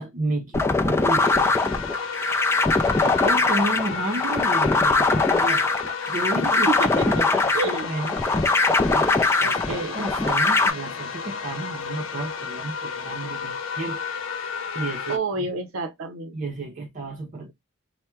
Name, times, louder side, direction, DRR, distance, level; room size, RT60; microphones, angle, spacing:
voice 1, 0.0-1.7 3.0-5.6 6.1-6.7 7.0-8.2 8.9-9.1 9.4-14.0 14.7-15.5 16.3-17.5, right 2 dB, 40° right, 0.5 m, -31 dB
sound 1, 0.5-10.7, left 3 dB, 15° left, 0.4 m, -22 dB
sound 2, 1.2-15.2, left 6 dB, 70° left, 0.7 m, -32 dB
voice 2, 6.5-7.1 7.5-7.9 9.0-10.0 15.1-16.3, right 3 dB, 85° right, 0.6 m, -29 dB
3.4 x 2.1 x 4.3 m
head